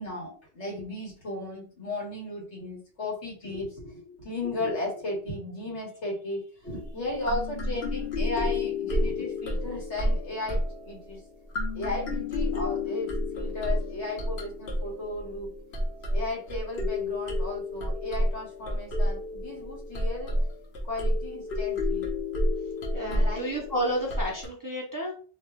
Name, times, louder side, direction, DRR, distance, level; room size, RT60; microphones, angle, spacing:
voice 1, 0.0-11.2 11.7-15.5 16.1-20.4 20.8-22.2 23.1-23.5, left 2 dB, 80° left, -3 dB, 1.8 m, -35 dB
sound 1, 6.7-6.9 7.2-11.3 11.5-24.5, left 1 dB, 65° left, 1.1 m, -30 dB
voice 2, 22.9-25.1, equal, 20° right, -2 dB, 0.6 m, -31 dB
3.2 x 2.2 x 3.5 m, 0.40 s
omnidirectional pair, 1.1 m